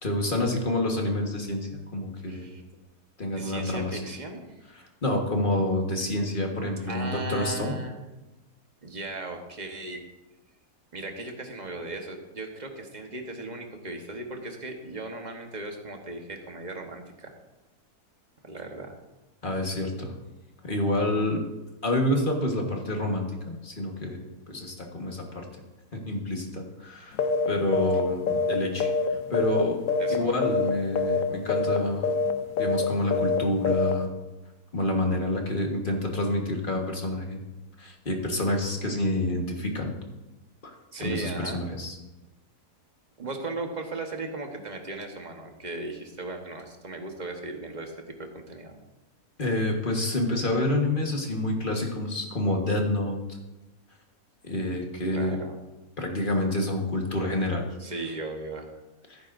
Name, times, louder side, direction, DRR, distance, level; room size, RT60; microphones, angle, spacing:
voice 1, 0.0-2.5 3.2-4.0 5.0-7.7 19.4-20.1 20.6-21.4 21.8-25.4 25.9-27.2 27.5-29.8 30.1-32.1 32.6-34.1 34.7-37.4 37.8-39.9 40.6-40.7 41.0-41.9 49.4-53.2 54.4-55.4 56.0-57.6 59.1-59.2, left 1 dB, 35° left, 1 dB, 1.5 m, -28 dB
voice 2, 2.3-2.6 3.3-4.4 6.9-8.0 8.8-10.0 10.9-17.4 18.4-18.9 30.0-30.3 40.9-41.6 43.2-47.9 48.2-48.7 55.1-55.6 57.8-58.7, right 2 dB, 30° right, 3 dB, 1.2 m, -37 dB
sound 1, 27.2-27.5 27.7-28.0 28.3-29.6 29.9-30.2 30.4-30.7 31.0-31.2 31.5-31.8 32.0-32.3 32.6-32.8 33.1-33.4 33.6-33.9, left 4 dB, 65° left, 1.0 m, -25 dB
15.0 x 9.4 x 2.6 m, 1.1 s
omnidirectional pair, 1.7 m